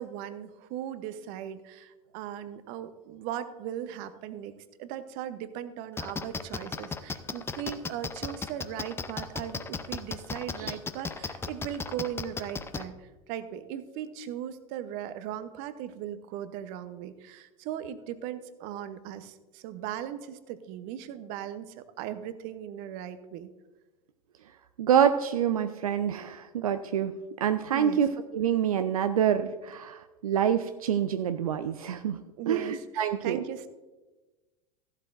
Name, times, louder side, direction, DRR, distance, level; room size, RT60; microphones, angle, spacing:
voice 1, 0.0-23.5 27.7-28.0 32.4-33.7, right 10 dB, 50° right, 12 dB, 0.9 m, -38 dB
sound 1, 6.0-12.8, left 4 dB, 15° left, 0.6 m, -34 dB
voice 2, 24.8-27.1 27.4-28.1 28.3-32.2 32.5-33.4, right 9 dB, 70° right, 9 dB, 0.6 m, -26 dB
15.0 x 11.5 x 2.6 m, 1.2 s
figure-of-eight pair, 85°, 19 cm